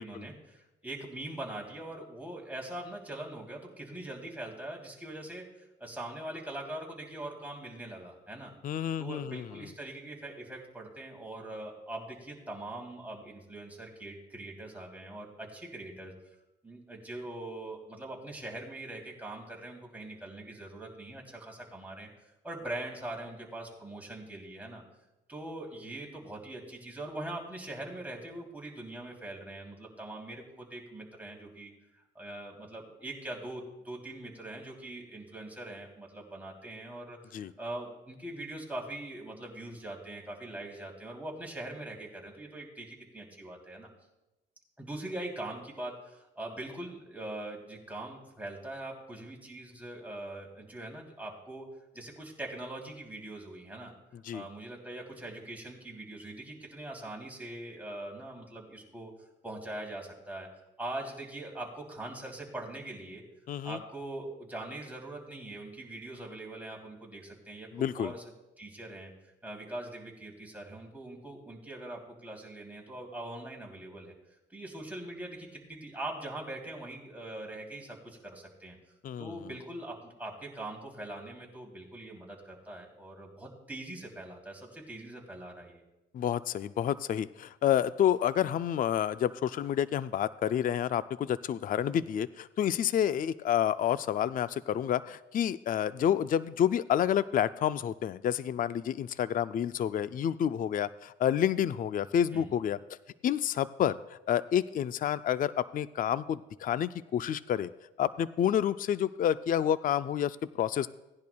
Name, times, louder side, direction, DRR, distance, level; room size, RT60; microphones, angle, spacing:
voice 1, 0.0-8.5 9.0-16.1 16.6-22.1 22.4-24.8 25.3-31.7 32.1-43.9 44.8-51.7 51.9-53.9 54.3-59.1 59.4-60.5 60.8-63.2 63.6-68.2 68.6-69.1 69.4-74.1 74.5-78.8 79.2-85.8 102.3-102.5, right 1 dB, 10° right, -1 dB, 2.9 m, -42 dB
voice 2, 8.6-9.4 37.3-37.5 54.2-54.4 63.5-63.8 67.7-68.1 79.0-79.4 86.1-102.8 103.2-107.7 108.0-110.9, left 10 dB, 45° left, 14 dB, 0.4 m, -29 dB
17.5 x 10.5 x 2.3 m, 0.99 s
cardioid pair, 90°, 20 cm